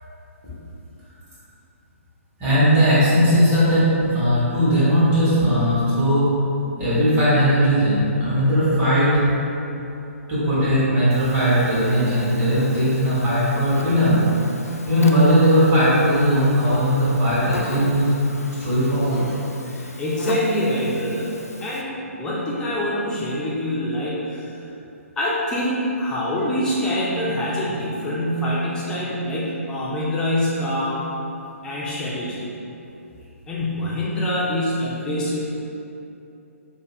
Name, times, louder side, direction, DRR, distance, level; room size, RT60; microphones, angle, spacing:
voice 1, 2.4-6.3 6.8-9.1 10.3-14.2 14.9-18.1 18.6-19.2, equal, 20° right, -11 dB, 1.1 m, -18 dB
Buzz, 11.1-21.8, left 2 dB, 80° left, 0.3 m, -38 dB
voice 2, 19.7-24.6 25.2-31.1 31.6-32.4 33.5-35.4, left 1 dB, 10° left, -7 dB, 0.4 m, -25 dB
4.5 x 2.2 x 3.1 m, 2.8 s
figure-of-eight pair, 130°, 8 cm